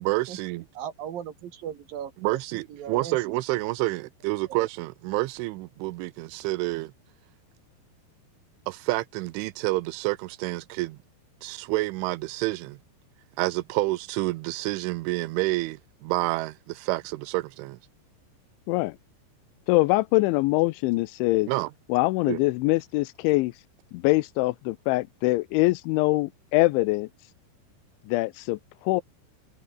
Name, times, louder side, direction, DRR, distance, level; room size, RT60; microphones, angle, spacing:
voice 1, 0.0-0.6 2.2-6.9 8.7-11.0 11.4-12.8 13.4-17.8 21.5-21.7 22.3-22.4, right 20 dB, 90° right, 3.3 m, -28 dB
voice 2, 0.7-3.2 4.5-4.6, right 9 dB, 60° right, 3.2 m, -38 dB
voice 3, 19.7-21.5 21.9-23.5 23.9-27.1 28.1-28.6 28.9-29.0, left 21 dB, 85° left, 3.0 m, -23 dB
omnidirectional pair, 5.4 m